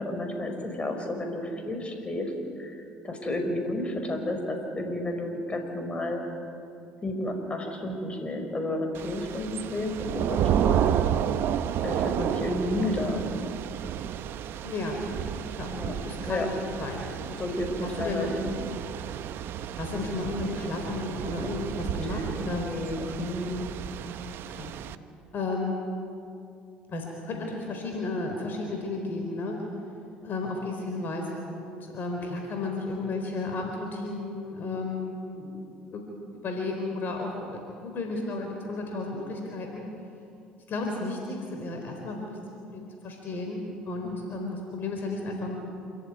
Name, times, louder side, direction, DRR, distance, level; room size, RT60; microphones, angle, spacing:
voice 1, 0.0-2.3 2.6-2.8 3.0-6.2 7.0-10.9 11.8-13.3 15.6-15.9 16.3-16.5 17.4-18.5 22.5-23.6 44.0-44.5, left 1 dB, 25° left, 4 dB, 5.5 m, -31 dB
Thunder / Rain, 8.9-25.0, right 10 dB, 60° right, 1.0 m, -31 dB
voice 2, 14.6-15.0 15.6-15.7 16.0-17.0 17.8-18.3 19.8-22.7 24.1-24.7 25.3-25.8 26.9-29.6 30.2-35.6 35.9-39.8 40.7-42.4 42.7-45.6, left 2 dB, 50° left, 2 dB, 4.2 m, -33 dB
27.0 x 14.5 x 9.8 m, 2.6 s
hypercardioid pair, 70°, 4 cm